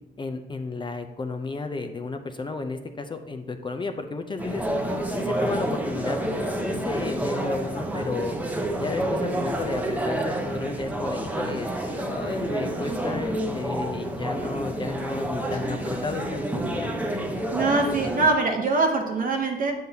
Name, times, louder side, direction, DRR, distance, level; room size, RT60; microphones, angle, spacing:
voice 1, 0.2-4.6 5.1-6.2 6.6-8.4 8.8-16.9, left 3 dB, 25° left, 6 dB, 0.5 m, -32 dB
sound 1, 4.4-18.3, right 1 dB, 10° right, 0.8 m, -29 dB
voice 2, 17.1-19.7, right 3 dB, 45° right, 2 dB, 0.8 m, -24 dB
7.7 x 5.4 x 2.8 m, 1.1 s
cardioid pair, 90°, 20 cm